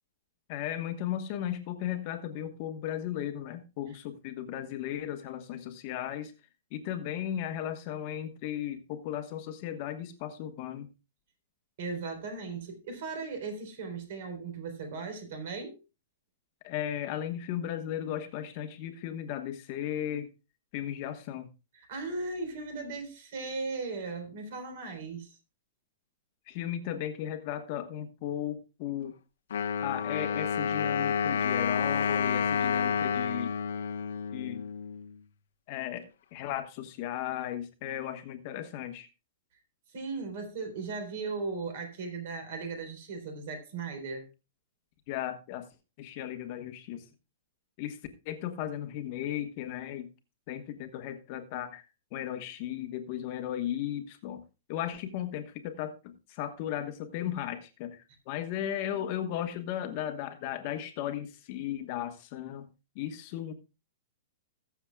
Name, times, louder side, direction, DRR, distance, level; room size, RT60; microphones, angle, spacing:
voice 1, 0.5-6.3 6.7-10.9 16.6-20.3 20.7-21.5 26.5-29.1 29.8-33.5 34.3-34.6 35.7-39.1 45.1-45.6 46.0-47.1 47.8-48.0 48.2-50.1 50.5-51.8 52.1-54.4 54.7-58.0 58.3-62.6 62.9-63.5, left 11 dB, 35° left, 1.2 m, -36 dB
voice 2, 11.8-15.8 21.7-25.4 39.9-44.3, right 4 dB, 50° right, 3.9 m, -37 dB
Wind instrument woodwind instrument, 29.5-35.1, left 7 dB, 80° left, 1.1 m, -29 dB
21.0 x 7.1 x 2.3 m
hypercardioid pair, 165°, 0 cm